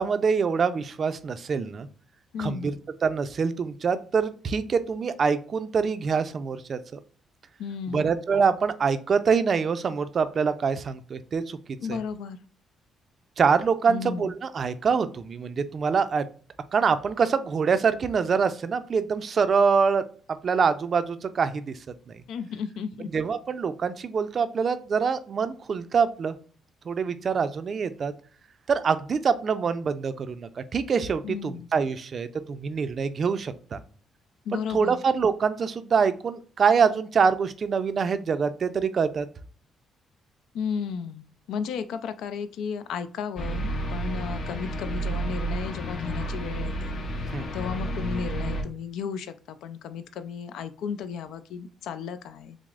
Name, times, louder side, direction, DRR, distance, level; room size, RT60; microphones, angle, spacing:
voice 1, 0.0-1.9 2.4-2.7 3.0-7.0 7.9-11.6 11.9-12.0 13.4-16.3 16.7-20.0 20.4-21.7 23.1-26.4 26.9-28.1 28.7-33.8 34.5-39.3 47.3-47.5, right 5 dB, 50° right, 12 dB, 0.4 m, -25 dB
voice 2, 2.3-2.7 7.6-8.2 11.8-12.4 13.9-14.3 22.3-23.1 31.2-31.7 34.5-35.0 40.5-46.9 47.5-52.6, left 6 dB, 85° left, 12 dB, 0.3 m, -34 dB
sound 1, 43.4-48.6, right 1 dB, 55° left, 0.8 m, -31 dB
6.0 x 2.0 x 2.3 m, 0.41 s
cardioid pair, 90°, 0 cm